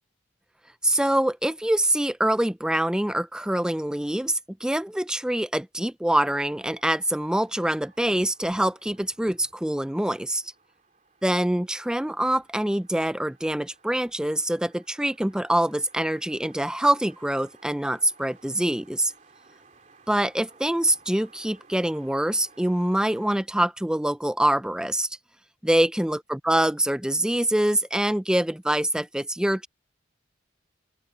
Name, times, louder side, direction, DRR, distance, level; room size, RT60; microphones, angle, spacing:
voice 1, 0.8-10.5 11.2-19.1 20.1-25.1 25.6-29.7, right 1 dB, 5° right, 0.3 m, -25 dB
sound 1, 6.3-23.4, right 4 dB, 40° right, 3.2 m, -58 dB
open air
head